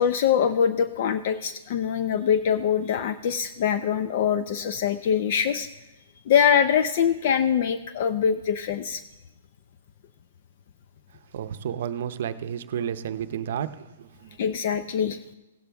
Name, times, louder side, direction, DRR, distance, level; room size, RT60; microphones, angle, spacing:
voice 1, 0.0-5.7 6.3-9.0 14.4-15.2, left 8 dB, 50° left, 11 dB, 0.5 m, -23 dB
voice 2, 11.3-14.4, right 9 dB, 55° right, 11 dB, 0.7 m, -31 dB
16.5 x 8.5 x 3.5 m, 1.0 s
hypercardioid pair, 155°, 0 cm